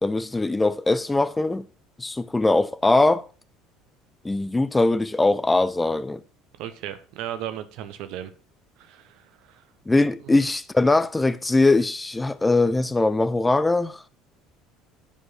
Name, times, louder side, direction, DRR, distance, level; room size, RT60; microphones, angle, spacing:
voice 1, 0.0-1.7 2.0-3.3 4.2-6.2 9.9-14.1, left 2 dB, 15° left, 0.5 m, -21 dB
voice 2, 6.6-8.3 8.8-9.6 10.2-10.5, right 11 dB, 55° right, 0.9 m, -36 dB
10.0 x 4.8 x 5.5 m
figure-of-eight pair, 60°, 0 cm